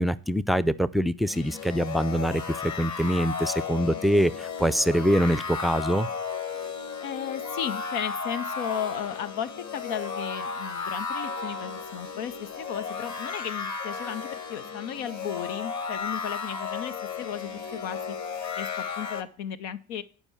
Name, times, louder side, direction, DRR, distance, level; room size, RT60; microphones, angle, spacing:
voice 1, 0.0-6.1, equal, ahead, 15 dB, 0.3 m, -24 dB
sound 1, 1.3-19.2, left 5 dB, 40° left, 1.4 m, -34 dB
voice 2, 7.0-18.2 18.6-20.0, left 9 dB, 85° left, 11 dB, 0.6 m, -35 dB
10.5 x 4.6 x 6.9 m, 0.42 s
supercardioid pair, 60°, 43 cm